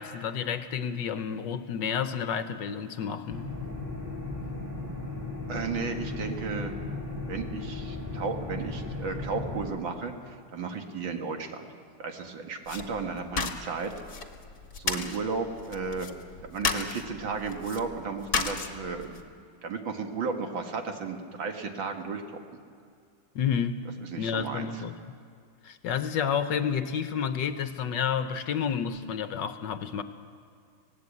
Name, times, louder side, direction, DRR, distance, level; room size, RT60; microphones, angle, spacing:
voice 1, 0.0-3.5 23.3-23.8 24.2-25.0 25.6-30.0, left 7 dB, 65° left, 10 dB, 1.4 m, -30 dB
sound 1, 3.3-9.7, left 2 dB, 10° right, 5.2 m, -36 dB
voice 2, 5.5-6.7 7.3-11.7 12.0-13.9 14.8-16.1 16.4-19.2 19.6-22.4 24.1-24.8, right 5 dB, 70° right, 4 dB, 2.4 m, -34 dB
sound 2, 12.7-19.2, left 5 dB, 45° left, 1.6 m, -35 dB
20.0 x 18.0 x 8.4 m, 2.3 s
omnidirectional pair, 2.2 m